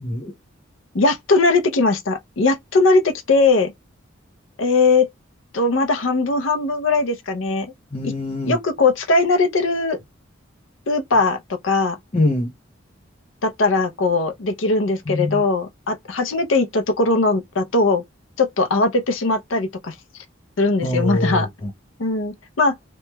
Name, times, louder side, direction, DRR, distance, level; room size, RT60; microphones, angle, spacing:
voice 1, 0.0-0.3 7.9-8.6 12.1-12.5 15.1-15.4 20.8-21.7, left 1 dB, 30° left, 0.7 m, -23 dB
voice 2, 0.9-3.7 4.6-5.1 5.5-7.7 8.0-8.1 8.4-10.0 10.9-12.0 13.4-18.0 18.4-19.9 20.6-21.5 22.0-22.7, left 3 dB, 75° left, 0.6 m, -19 dB
3.1 x 3.0 x 2.2 m
head